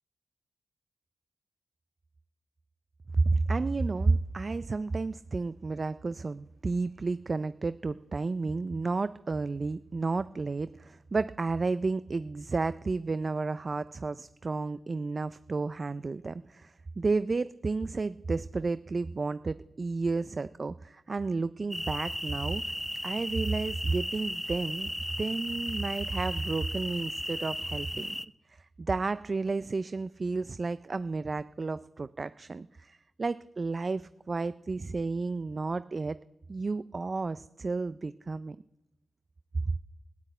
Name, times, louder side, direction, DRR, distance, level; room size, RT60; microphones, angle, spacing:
voice 1, 3.1-22.6 23.0-24.9 25.2-28.2 28.5-36.2 36.5-38.6 39.7-39.8, right 3 dB, 45° right, 15 dB, 0.4 m, -31 dB
sound 1, 21.7-28.3, equal, ahead, 0.6 m, -36 dB
14.5 x 8.5 x 9.0 m, 0.96 s
cardioid pair, 55°, 0 cm